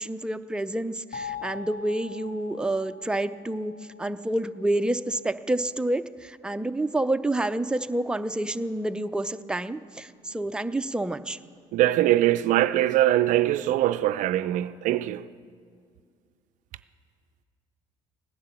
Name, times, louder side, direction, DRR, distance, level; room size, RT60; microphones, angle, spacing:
voice 1, 0.0-11.4, right 1 dB, 5° right, 0.5 m, -28 dB
sound 1, 1.1-5.8, left 6 dB, 50° left, 3.0 m, -43 dB
voice 2, 11.7-15.3, right 14 dB, 65° right, 0.4 m, -22 dB
16.5 x 10.5 x 7.0 m
supercardioid pair, 65°, 14 cm